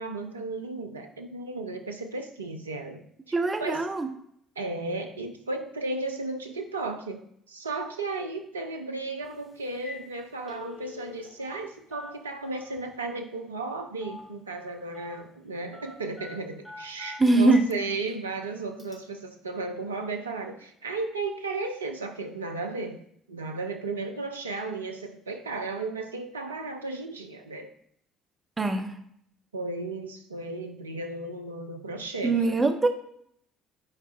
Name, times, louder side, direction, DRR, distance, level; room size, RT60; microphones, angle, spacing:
voice 1, 0.0-3.8 4.6-7.2 7.5-23.0 23.3-27.7 29.5-32.4, right 3 dB, 85° right, 5 dB, 0.5 m, -34 dB
voice 2, 3.3-4.1 17.2-17.7 28.6-28.9 32.2-32.9, right 2 dB, 25° right, 6 dB, 0.8 m, -22 dB
Telephone, 9.2-9.4 9.7-10.0 10.3-11.6 11.9-12.9 14.0-14.3 14.5-15.2 15.7-17.7 18.1-18.2 18.8-18.9, left 3 dB, 15° left, 1.9 m, -44 dB
9.7 x 4.6 x 2.4 m, 0.69 s
figure-of-eight pair, 50°, 0 cm